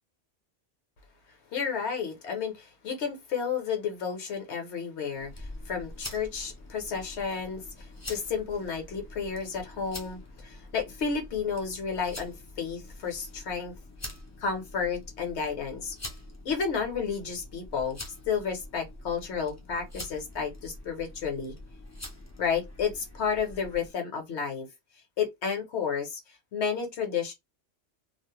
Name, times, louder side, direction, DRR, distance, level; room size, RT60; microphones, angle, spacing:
voice 1, 1.5-13.8 14.4-15.9 16.4-18.0 18.3-21.5 22.4-24.7 25.2-26.2 26.5-27.3, left 6 dB, 70° left, 1.1 m, -31 dB
sound 1, 5.1-23.9, left 1 dB, 25° left, 0.4 m, -45 dB
2.5 x 2.0 x 2.8 m
omnidirectional pair, 1.2 m